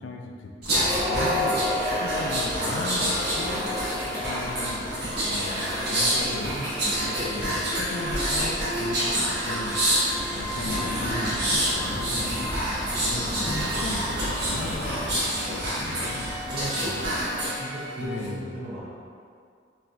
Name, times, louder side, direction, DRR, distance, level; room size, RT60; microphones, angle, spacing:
voice 1, 0.0-1.6 2.0-3.7 4.2-4.9 5.2-6.5 7.0-9.8 10.3-12.5 13.0-16.4 18.0-18.5, left 2 dB, 75° left, 2 dB, 0.3 m, -36 dB
sound 1, 0.6-17.6 18.0-18.3, equal, 55° right, 1.0 m, -27 dB
sound 2, 0.9-18.1, right 1 dB, 75° right, 0.7 m, -38 dB
voice 2, 6.3-6.7 7.3-7.5 11.1-11.5 16.5-17.3 17.5-18.8, right 1 dB, 40° right, -10 dB, 0.5 m, -36 dB
sound 3, 10.1-15.2, equal, 30° left, 0.6 m, -36 dB
4.0 x 2.6 x 2.2 m, 2.3 s
head